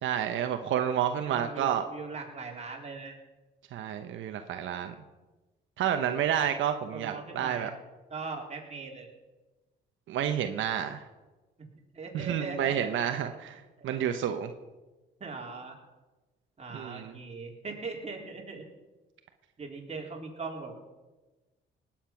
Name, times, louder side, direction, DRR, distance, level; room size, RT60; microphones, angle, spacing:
voice 1, 0.0-1.9 3.7-4.9 5.8-7.7 10.1-11.0 12.1-14.5 16.7-17.1, right 9 dB, 80° right, 7 dB, 0.9 m, -30 dB
voice 2, 1.2-3.2 6.9-7.7 8.1-9.1 11.6-11.7 11.9-12.9 15.2-15.8 16.6-18.7 19.6-20.9, right 4 dB, 35° right, 0 dB, 3.9 m, -40 dB
19.0 x 8.9 x 6.0 m, 1.2 s
cardioid pair, 90°, 20 cm